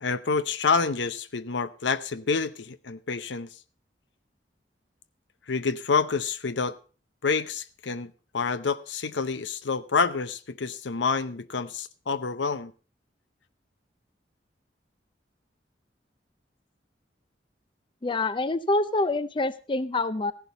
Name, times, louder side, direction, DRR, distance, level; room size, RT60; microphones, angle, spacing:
voice 1, 0.0-3.5 5.5-6.8 7.2-12.7, left 5 dB, 80° left, 0.7 m, -28 dB
voice 2, 18.0-20.3, left 2 dB, 30° left, 0.5 m, -26 dB
15.0 x 11.0 x 4.0 m
head